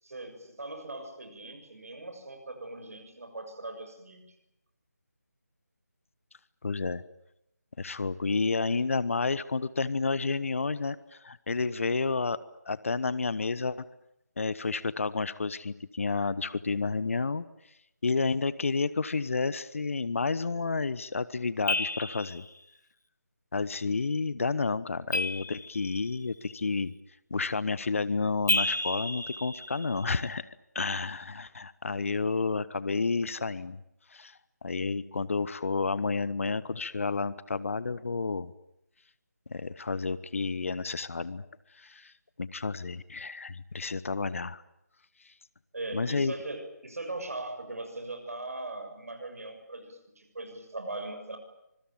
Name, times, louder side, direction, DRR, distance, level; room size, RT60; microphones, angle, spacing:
voice 1, 0.0-4.2 45.7-51.4, right 2 dB, 60° right, 6 dB, 7.0 m, -40 dB
voice 2, 6.6-7.0 7.8-12.4 12.7-13.8 14.4-17.4 18.0-22.5 23.5-26.9 27.3-33.8 34.1-38.5 39.5-41.5 41.7-42.1 42.4-44.6 45.9-46.3, left 4 dB, 50° left, 17 dB, 1.1 m, -30 dB
sound 1, 21.7-22.5 25.1-26.1 28.5-30.1, left 2 dB, 90° left, 1.6 m, -31 dB
25.5 x 22.0 x 9.1 m, 0.82 s
figure-of-eight pair, 160°, 9 cm